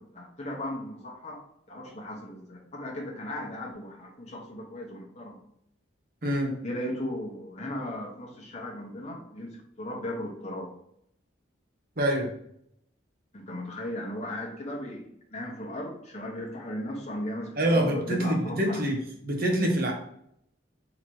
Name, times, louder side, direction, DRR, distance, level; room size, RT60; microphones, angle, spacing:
voice 1, 0.0-1.4 1.7-5.4 6.6-10.7 13.3-18.8, left 1 dB, 35° left, -1 dB, 1.0 m, -37 dB
voice 2, 6.2-6.6 12.0-12.3 17.6-19.0 19.2-19.9, right 1 dB, 50° right, 0 dB, 1.0 m, -25 dB
4.0 x 3.0 x 4.6 m, 0.72 s
head